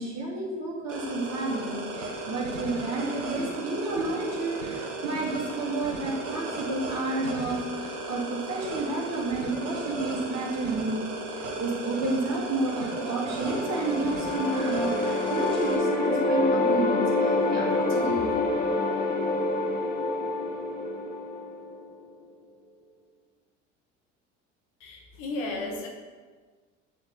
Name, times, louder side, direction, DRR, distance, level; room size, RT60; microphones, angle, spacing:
voice 1, 0.0-11.0 11.6-18.3, right 2 dB, 45° right, -2 dB, 2.2 m, -31 dB
sound 1, 0.9-15.7, right 2 dB, 75° right, 1.4 m, -35 dB
sound 2, 12.8-21.9, left 2 dB, 25° left, 1.7 m, -27 dB
voice 2, 24.8-25.9, left 2 dB, 60° left, 0 dB, 1.8 m, -34 dB
9.4 x 4.1 x 4.0 m, 1.4 s
hypercardioid pair, 70°, 38 cm